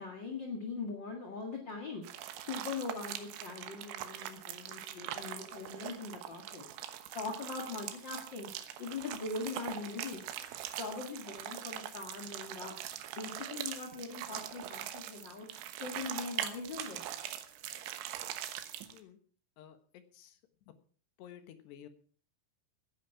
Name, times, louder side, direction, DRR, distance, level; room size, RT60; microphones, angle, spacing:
voice 1, 0.0-2.0 2.4-6.6 7.1-8.5 8.8-10.2 10.8-12.7 13.2-15.5 15.8-17.0, left 4 dB, 50° left, 1 dB, 1.4 m, -41 dB
sound 1, 2.0-19.0, right 11 dB, 85° right, 3.6 m, -42 dB
voice 2, 19.6-20.4 21.2-21.9, left 10 dB, 70° left, 9 dB, 3.4 m, -53 dB
17.0 x 10.5 x 5.8 m, 0.43 s
omnidirectional pair, 5.2 m